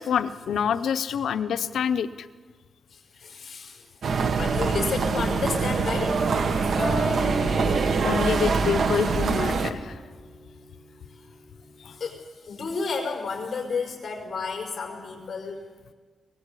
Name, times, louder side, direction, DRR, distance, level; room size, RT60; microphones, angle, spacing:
voice 1, 0.0-2.3 8.0-10.0, left 8 dB, 85° left, 10 dB, 0.7 m, -27 dB
voice 2, 2.9-6.6 11.8-15.6, left 4 dB, 45° left, 2 dB, 4.9 m, -32 dB
sound 1, 4.0-9.7, right 4 dB, 60° right, 1.5 m, -24 dB
Acoustic guitar, 6.8-11.2 11.6-12.0, left 1 dB, 15° left, 4.1 m, -36 dB
23.0 x 19.0 x 8.3 m, 1.5 s
wide cardioid pair, 125°, 0 cm